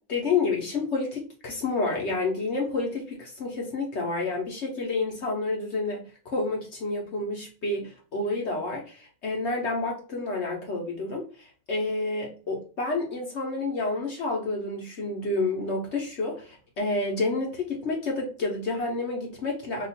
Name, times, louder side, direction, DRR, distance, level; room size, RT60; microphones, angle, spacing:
voice 1, 0.1-19.9, left 3 dB, 55° left, 0 dB, 0.9 m, -29 dB
2.8 x 2.4 x 4.1 m, 0.38 s
omnidirectional pair, 1.8 m